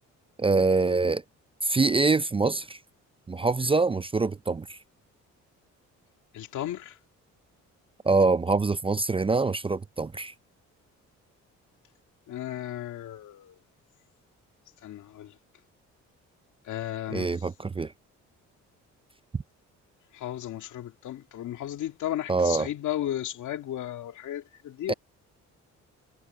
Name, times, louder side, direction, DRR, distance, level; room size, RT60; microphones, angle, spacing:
voice 1, 0.4-1.2 1.6-2.8 3.3-4.8 8.0-10.3 17.1-17.9 22.3-22.7 24.9-25.0, right 3 dB, 20° right, 0.5 m, -24 dB
voice 2, 6.3-7.0 12.3-13.5 14.8-15.3 16.7-17.3 20.1-24.9, left 12 dB, 75° left, 2.3 m, -34 dB
cardioid pair, 90°, 30 cm